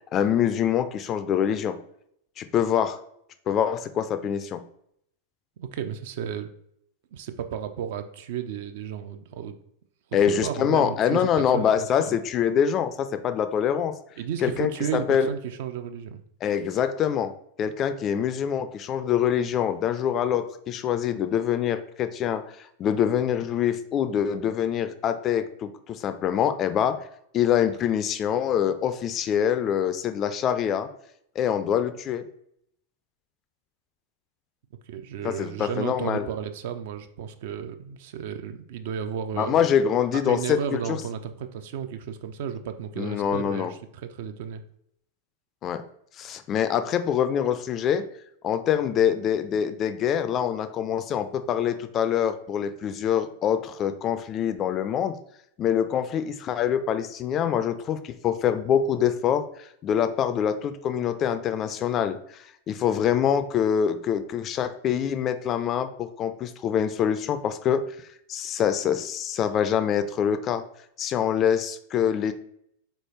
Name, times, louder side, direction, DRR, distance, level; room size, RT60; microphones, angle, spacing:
voice 1, 0.1-1.8 2.4-3.0 3.5-4.6 10.1-14.0 14.4-15.3 16.4-17.3 17.6-27.1 27.3-30.9 31.4-32.3 35.2-36.3 39.4-41.0 43.0-43.7 45.6-45.8 46.2-48.1 48.4-55.2 55.6-67.8 68.3-70.6 71.0-72.3, left 9 dB, 30° left, 11 dB, 0.3 m, -25 dB
voice 2, 5.6-6.5 7.1-9.5 10.4-12.2 14.2-16.2 34.9-39.6 40.1-44.6, right 8 dB, 55° right, 9 dB, 0.3 m, -33 dB
3.9 x 3.3 x 3.1 m, 0.72 s
figure-of-eight pair, 90°, 0 cm